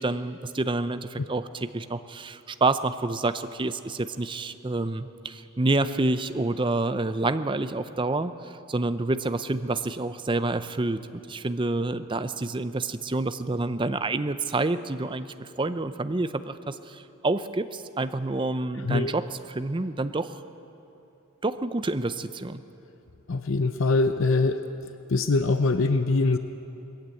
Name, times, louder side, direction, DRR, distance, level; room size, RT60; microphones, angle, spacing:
voice 1, 0.0-11.0 11.3-20.3 21.4-22.6, right 2 dB, 20° right, 11 dB, 0.6 m, -28 dB
voice 2, 18.8-19.1 23.3-24.6 25.1-26.4, left 3 dB, 60° left, 9 dB, 0.6 m, -23 dB
20.5 x 14.5 x 9.1 m, 2.9 s
head